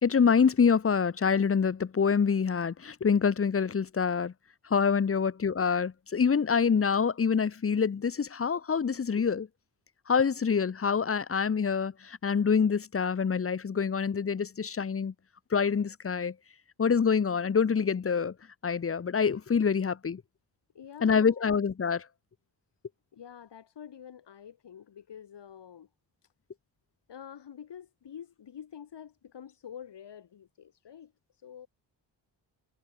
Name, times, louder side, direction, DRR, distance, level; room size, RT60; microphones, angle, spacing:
voice 1, 0.0-4.3 4.7-9.5 10.1-15.1 15.5-16.3 16.8-18.3 18.6-20.2 21.0-22.0, left 6 dB, 30° left, 1.0 m, -26 dB
voice 2, 20.7-21.5 23.1-25.9 26.2-26.3 27.1-31.7, left 8 dB, 70° left, 6.2 m, -47 dB
wide cardioid pair, 140°, 43 cm